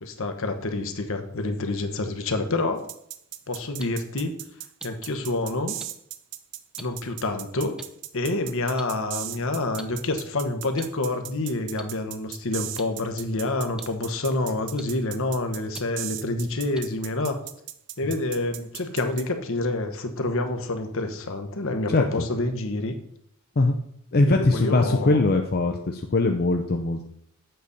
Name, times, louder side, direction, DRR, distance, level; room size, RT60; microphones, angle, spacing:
voice 1, 0.0-2.8 3.5-4.4 4.8-5.7 6.8-7.8 8.1-17.4 18.0-23.0 24.3-25.2, left 2 dB, 65° left, 7 dB, 1.0 m, -28 dB
sound 1, 2.9-19.3, right 13 dB, 60° right, 0.5 m, -37 dB
sound 2, 3.8-3.9 4.8-4.9 5.8-5.9 6.8-6.9 7.8-7.9 8.8-8.9 9.8-9.9 10.8-10.9 11.8-11.9 12.8-12.9 13.8-13.9 14.8-14.9 15.8-15.9 16.7-16.8, right 1 dB, 5° right, 0.5 m, -39 dB
voice 2, 21.9-22.3 23.6-23.8 24.1-27.0, left 2 dB, 45° left, 4 dB, 0.6 m, -21 dB
7.8 x 4.1 x 6.6 m, 0.71 s
head